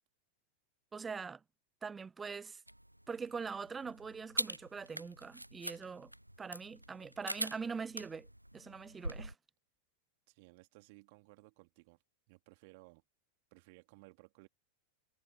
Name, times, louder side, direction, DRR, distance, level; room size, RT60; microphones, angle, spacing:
voice 1, 0.9-1.4 1.8-2.6 3.1-6.1 6.4-8.3 8.5-9.3, right 5 dB, 15° right, 0.4 m, -43 dB
sound 1, 2.7-9.3, right 1 dB, 90° right, 0.4 m, -43 dB
voice 2, 10.3-12.0 12.3-13.0 13.5-14.5, right 26 dB, 50° right, 2.8 m, -59 dB
figure-of-eight pair, 90°, 0 cm